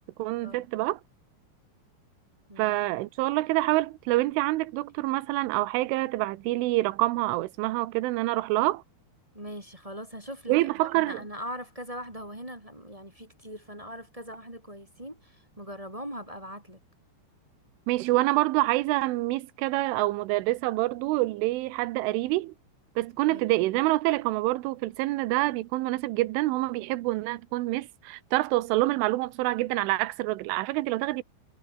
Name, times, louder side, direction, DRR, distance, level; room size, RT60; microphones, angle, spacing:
voice 1, 0.2-1.0 2.6-8.8 10.5-11.2 17.9-22.5 23.0-31.2, right 19 dB, 90° right, 3.4 m, -26 dB
voice 2, 9.3-16.8 23.3-23.4, equal, 10° right, 2.4 m, -41 dB
omnidirectional pair, 5.5 m